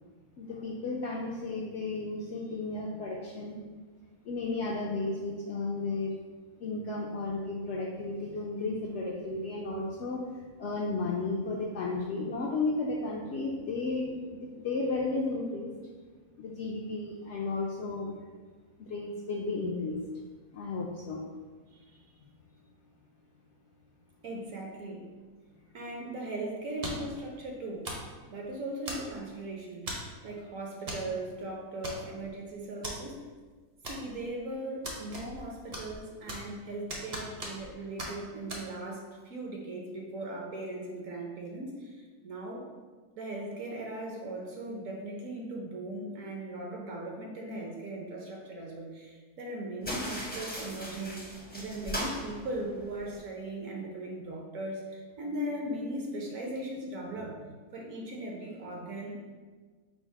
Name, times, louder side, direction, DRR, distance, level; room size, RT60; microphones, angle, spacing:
voice 1, 0.4-3.6 4.2-6.1 6.6-10.2 10.6-15.7 16.4-18.2 18.8-20.0 20.5-21.2, left 3 dB, 70° left, -2 dB, 0.6 m, -33 dB
voice 2, 21.7-22.0 24.2-25.1 25.7-27.9 28.3-33.2 33.9-42.7 43.2-57.4 57.7-59.2, right 1 dB, 65° right, -1 dB, 1.0 m, -38 dB
sound 1, 26.8-27.2 27.8-28.1 28.9-29.3 29.9-30.1 30.9-31.1 31.3-31.4 31.8-32.3 32.8-33.0 33.8-34.3 34.8-35.5 35.7-36.6 36.9-37.7 38.0-38.1 38.5-38.6, right 1 dB, 40° right, 0.6 m, -38 dB
sound 2, 49.8-53.2, equal, 10° left, 0.4 m, -39 dB
5.2 x 2.0 x 4.6 m, 1.4 s
omnidirectional pair, 1.6 m